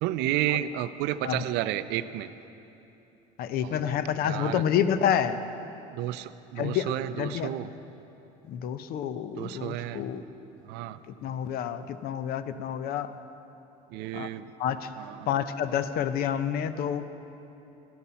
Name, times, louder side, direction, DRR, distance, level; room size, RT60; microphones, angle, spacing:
voice 1, 0.0-2.3 3.6-4.0 4.2-4.6 5.9-7.7 9.4-10.1 10.7-11.0 13.9-14.5 15.0-15.3, right 13 dB, 70° right, 14 dB, 0.4 m, -31 dB
voice 2, 3.4-5.4 6.6-7.5 8.5-10.2 11.2-13.1 14.1-14.3 14.6-14.9 15.3-17.1, left 9 dB, 55° left, 12 dB, 0.6 m, -28 dB
12.0 x 8.4 x 5.7 m, 3.0 s
supercardioid pair, 95°, 18 cm